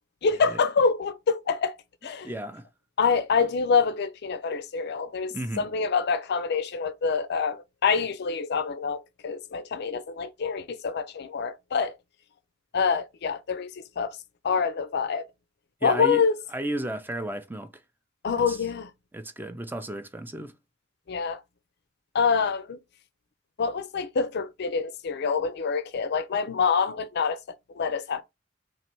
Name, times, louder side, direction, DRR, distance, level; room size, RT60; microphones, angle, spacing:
voice 1, 0.2-1.8 2.0-2.3 3.0-12.0 12.7-14.2 14.4-15.3 15.8-16.4 18.2-18.9 21.1-21.4 22.1-22.8 23.6-27.4 27.7-28.2, left 5 dB, 60° left, 0.4 m, -26 dB
voice 2, 2.2-2.7 5.3-5.7 15.8-16.3 16.5-17.7 18.5-18.6 19.1-20.5, right 1 dB, 10° right, 0.5 m, -33 dB
3.1 x 3.0 x 4.4 m
head